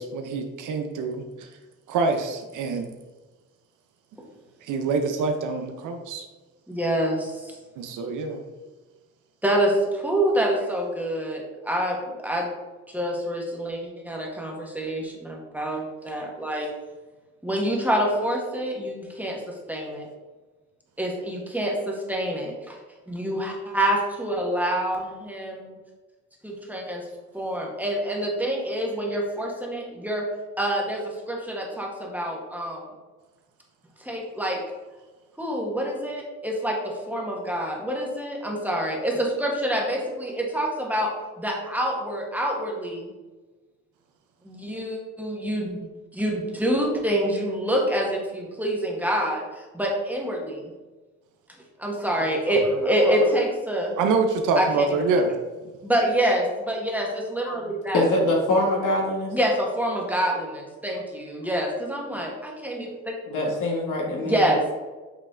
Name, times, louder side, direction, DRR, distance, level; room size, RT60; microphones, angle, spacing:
voice 1, 0.0-1.5 1.9-2.9 4.6-6.3 7.8-8.4 54.0-55.3, right 4 dB, 85° right, 5 dB, 0.7 m, -25 dB
voice 2, 6.7-7.6 9.4-12.5 12.9-16.7 17.4-20.1 21.0-22.8 23.1-25.7 26.4-27.1 27.3-30.3 30.6-32.9 34.0-34.6 35.4-43.1 44.4-50.7 51.8-54.0 54.5-55.0 55.8-58.0 59.3-62.9 64.2-64.7, right 1 dB, 5° right, -1 dB, 1.4 m, -26 dB
voice 3, 57.9-59.3 63.3-64.4, left 1 dB, 80° left, -1 dB, 1.6 m, -23 dB
7.9 x 3.2 x 3.7 m, 1.2 s
cardioid pair, 90°, 30 cm